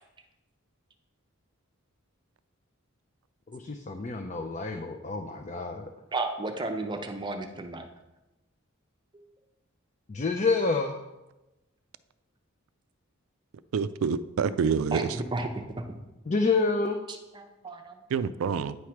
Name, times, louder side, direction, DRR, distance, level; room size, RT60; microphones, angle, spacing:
voice 1, 3.5-5.8 10.1-10.9 16.3-17.0, left 3 dB, 35° left, 5 dB, 0.4 m, -28 dB
voice 2, 6.1-7.8 14.9-15.5 15.8-15.9 17.3-18.0, right 2 dB, 20° right, 5 dB, 0.6 m, -33 dB
voice 3, 13.7-15.2 18.1-18.8, right 6 dB, 80° right, 14 dB, 0.4 m, -27 dB
9.2 x 3.2 x 5.8 m, 1.0 s
head